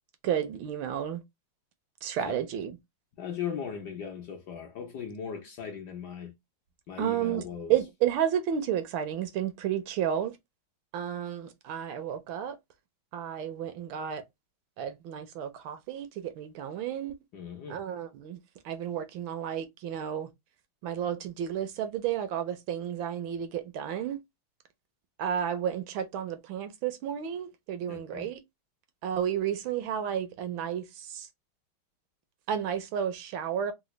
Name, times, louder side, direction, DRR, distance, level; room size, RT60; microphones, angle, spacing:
voice 1, 0.2-1.2 2.0-2.7 7.0-10.4 10.9-12.6 13.1-14.2 14.8-17.1 17.7-18.4 18.6-20.3 20.8-24.2 25.2-28.4 29.0-31.3 32.5-33.7, right 9 dB, 75° right, 1.3 m, -32 dB
voice 2, 3.2-6.3 6.9-7.7 17.3-17.8 27.9-28.3, left 7 dB, 65° left, 1.1 m, -38 dB
3.9 x 2.2 x 3.1 m
omnidirectional pair, 2.3 m